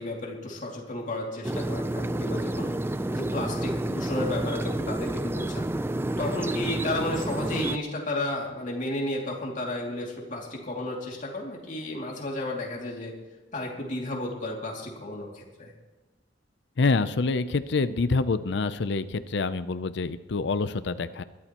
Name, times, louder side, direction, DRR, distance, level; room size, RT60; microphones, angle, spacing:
voice 1, 0.0-2.7 3.1-5.7 6.2-13.1 13.5-15.7, left 1 dB, 45° left, -1 dB, 2.6 m, -33 dB
sound 1, 1.4-7.8, right 1 dB, 15° right, 0.4 m, -29 dB
voice 2, 16.8-21.2, left 3 dB, 65° left, 13 dB, 0.6 m, -26 dB
22.0 x 12.5 x 3.0 m, 1.2 s
head